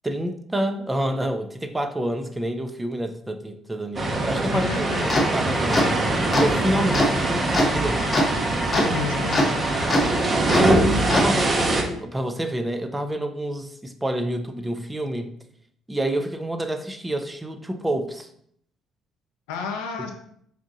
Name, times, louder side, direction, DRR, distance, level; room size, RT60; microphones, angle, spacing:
voice 1, 0.0-5.9 6.4-8.0 10.5-15.3 15.9-18.3 20.0-20.1, equal, 15° right, 7 dB, 0.5 m, -27 dB
sound 1, 4.0-11.8, right 2 dB, 35° right, 0.9 m, -23 dB
voice 2, 4.5-5.0 8.7-9.7 19.5-20.1, left 5 dB, 90° left, 3 dB, 0.6 m, -31 dB
sound 2, 4.9-11.3, left 1 dB, 30° left, 0.9 m, -25 dB
3.5 x 2.6 x 3.8 m, 0.66 s
supercardioid pair, 65°, 0 cm